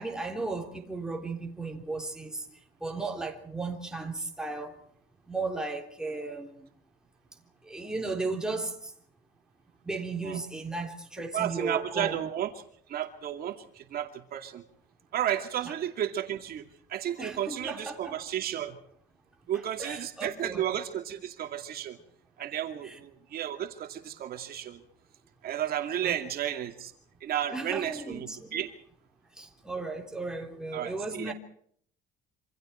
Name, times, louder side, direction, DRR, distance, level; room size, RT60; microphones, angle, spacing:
voice 1, 0.0-2.5 2.8-4.8 5.3-6.7 7.6-8.9 9.8-12.2 15.6-15.7 17.2-18.2 19.8-20.7 22.8-23.0 26.0-26.1 27.5-28.6 29.3-31.3, right 3 dB, 5° right, 3.6 m, -35 dB
voice 2, 11.3-12.5 12.9-14.6 15.1-16.6 16.9-18.8 19.5-22.0 22.4-24.8 25.4-26.9 27.2-28.7 30.7-31.3, right 10 dB, 45° right, 2.5 m, -33 dB
27.5 x 26.0 x 4.5 m
cardioid pair, 150°, 21 cm